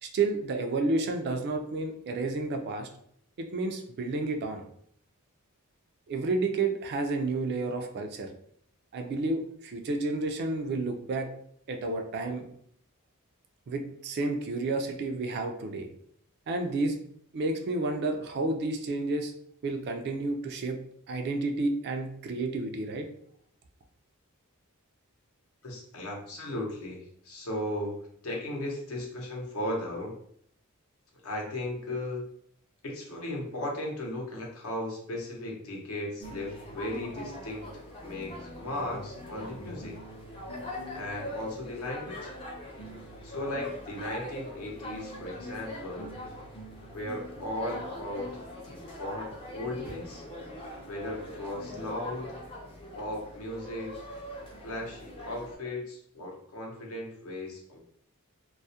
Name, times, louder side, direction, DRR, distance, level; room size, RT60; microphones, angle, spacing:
voice 1, 0.0-2.9 3.4-4.6 6.1-8.3 8.9-11.3 11.7-12.5 13.7-15.9 16.5-17.0 17.3-19.3 19.6-20.8 21.1-23.1, right 3 dB, 50° right, 4 dB, 0.3 m, -30 dB
voice 2, 25.6-30.2 31.2-32.3 32.8-40.0 40.9-42.3 43.2-46.1 46.9-48.3 48.6-50.2 50.8-52.4 53.0-54.0 54.6-57.8, left 1 dB, 70° left, -1 dB, 0.7 m, -36 dB
sound 1, 36.2-55.6, left 1 dB, 25° left, 0.4 m, -42 dB
2.3 x 2.0 x 2.7 m, 0.66 s
head